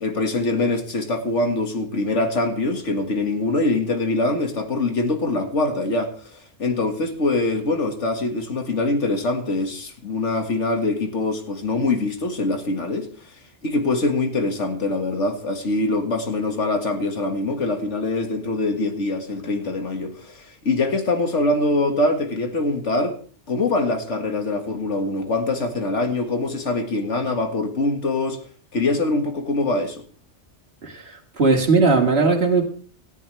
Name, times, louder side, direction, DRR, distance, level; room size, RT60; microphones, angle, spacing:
voice 1, 0.0-13.1 13.6-23.2 23.5-28.4 28.7-30.0, left 2 dB, 85° left, 2.2 m, -23 dB
voice 2, 31.4-32.6, right 4 dB, 60° right, 2.3 m, -18 dB
17.5 x 13.5 x 3.3 m
omnidirectional pair, 1.2 m